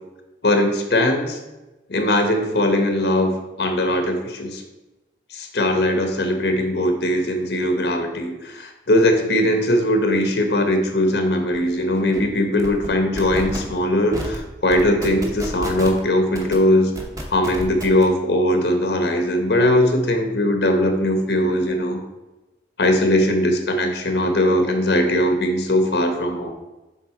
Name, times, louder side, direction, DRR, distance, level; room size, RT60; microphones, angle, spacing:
voice 1, 0.4-1.4 1.9-4.6 5.3-16.9 17.3-22.0 22.8-26.5, left 1 dB, 75° left, 5 dB, 0.9 m, -20 dB
sound 1, 11.5-11.6 11.9-12.2 12.6-12.9 13.2-13.6 14.1-14.4 14.7-16.0 16.3-16.5 17.0-18.0, equal, 20° right, 0.9 m, -31 dB
7.4 x 3.7 x 4.8 m, 1.1 s
head